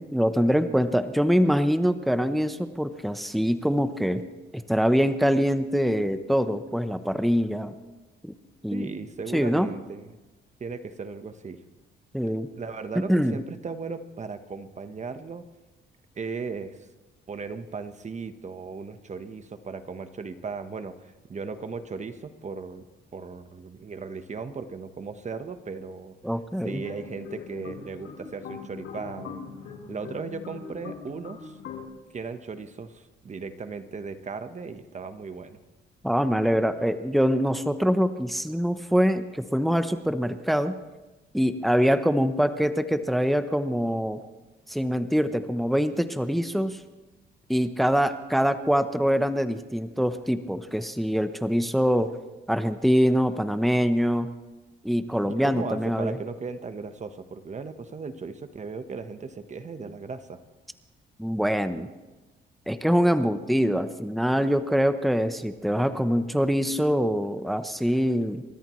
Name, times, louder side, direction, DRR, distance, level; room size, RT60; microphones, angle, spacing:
voice 1, 0.0-4.3 4.5-7.7 8.2-8.3 8.6-8.9 9.3-9.7 12.1-12.5 13.1-13.4 26.2-26.8 36.0-40.8 41.3-44.2 44.7-46.8 47.5-52.1 52.5-54.3 54.8-56.2 61.2-61.9 62.7-68.4, equal, ahead, 10 dB, 0.9 m, -24 dB
voice 2, 8.7-10.1 10.6-11.6 12.5-15.5 16.1-16.9 17.3-22.9 23.1-26.2 26.6-29.4 29.9-31.6 32.1-35.6 55.4-60.4, right 4 dB, 35° right, 9 dB, 1.2 m, -37 dB
sound 1, 26.6-31.9, left 6 dB, 80° left, 4.7 m, -41 dB
29.5 x 13.5 x 3.2 m, 1.1 s
cardioid pair, 90°, 20 cm